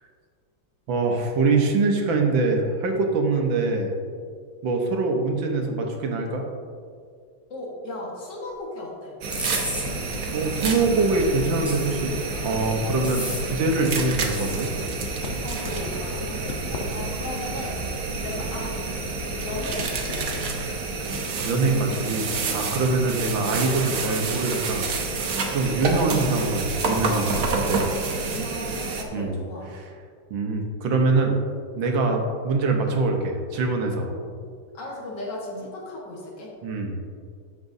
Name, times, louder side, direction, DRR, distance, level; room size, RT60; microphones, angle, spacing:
voice 1, 0.9-4.0 4.6-6.4 10.3-12.2 12.4-14.7 21.0-24.9 25.5-28.0 29.1-29.4 29.7-29.8 30.3-31.4 31.7-34.1 36.6-37.0, right 3 dB, 80° right, 2 dB, 1.7 m, -24 dB
voice 2, 7.5-9.2 15.4-17.9 18.2-18.8 19.4-20.6 25.9-26.1 28.0-29.7 34.7-36.5, left 2 dB, 65° left, -2 dB, 2.1 m, -36 dB
sound 1, 9.2-29.0, right 4 dB, 55° right, 1.1 m, -29 dB
sound 2, 9.3-9.9 10.6-10.8 11.7-12.2 13.0-13.5 14.3-14.6, equal, ahead, 1.3 m, -32 dB
sound 3, 9.5-20.9, left 4 dB, 90° left, 1.6 m, -37 dB
13.0 x 6.0 x 2.7 m, 2.2 s
omnidirectional pair, 2.1 m